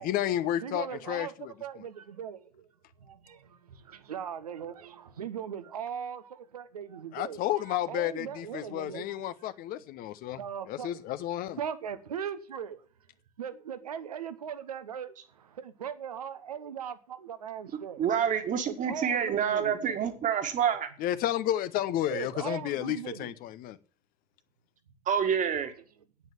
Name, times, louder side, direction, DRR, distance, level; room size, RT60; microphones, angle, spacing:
voice 1, 0.0-1.8 7.1-11.6 21.0-23.8, left 12 dB, 45° left, 0.9 m, -32 dB
voice 2, 0.6-1.3 1.6-2.7 3.0-7.4 7.9-9.0 10.4-10.9 11.6-12.8 13.4-18.0 18.7-20.0 22.1-23.3, right 8 dB, 75° right, 1.0 m, -39 dB
voice 3, 18.0-20.9 25.1-25.7, right 8 dB, 40° right, 1.9 m, -27 dB
9.1 x 8.2 x 7.5 m
figure-of-eight pair, 60°, 20 cm